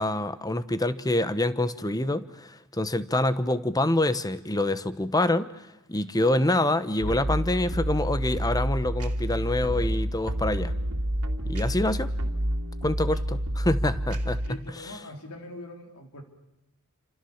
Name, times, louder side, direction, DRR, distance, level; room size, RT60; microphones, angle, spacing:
voice 1, 0.0-5.5 5.9-10.7 11.5-12.1 12.8-14.6, left 1 dB, 15° left, 13 dB, 1.1 m, -26 dB
sound 1, 7.0-14.5, equal, 85° right, 2.6 m, -29 dB
voice 2, 14.4-16.2, left 1 dB, 85° left, 4 dB, 4.5 m, -42 dB
29.0 x 26.5 x 7.3 m, 0.92 s
head